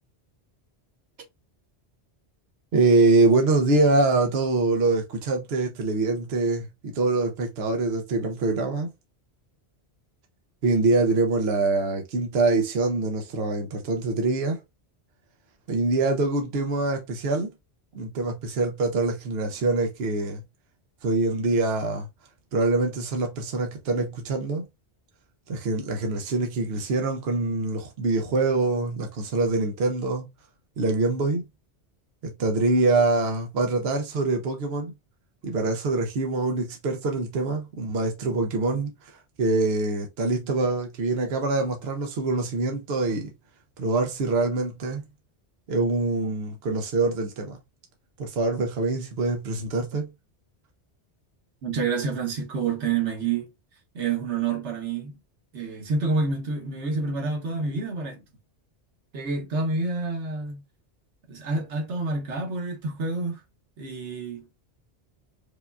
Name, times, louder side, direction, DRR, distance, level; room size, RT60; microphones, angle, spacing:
voice 1, 2.7-8.9 10.6-14.6 15.7-17.5 17.9-20.4 21.0-22.1 22.5-24.6 25.5-30.3 30.8-31.4 32.2-34.9 35.4-43.3 43.8-45.0 45.7-47.6 48.2-50.1, right 3 dB, 65° right, 0.9 m, -24 dB
voice 2, 51.6-53.5 53.9-55.1 55.5-58.2 59.1-60.6 61.3-63.4 63.8-64.4, right 4 dB, 90° right, 1.3 m, -28 dB
4.9 x 2.3 x 2.4 m
omnidirectional pair, 1.1 m